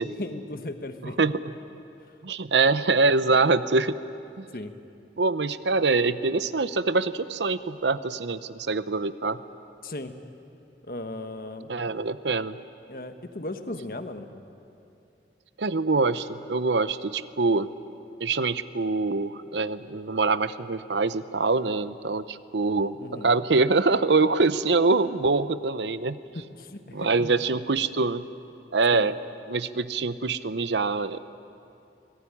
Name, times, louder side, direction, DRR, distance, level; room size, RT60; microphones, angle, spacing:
voice 1, 0.2-1.2 4.5-4.7 9.8-10.1 10.9-11.7 12.9-14.3 23.0-23.3 26.3-27.3 28.9-29.1, left 2 dB, 55° left, 7 dB, 1.4 m, -36 dB
voice 2, 1.0-1.5 2.2-4.0 4.4-4.5 5.2-9.4 11.7-12.6 15.6-17.7 18.2-26.2 26.9-28.3 28.7-29.2 29.5-31.2, right 3 dB, 85° right, 14 dB, 0.8 m, -24 dB
24.5 x 19.0 x 10.0 m, 2.7 s
head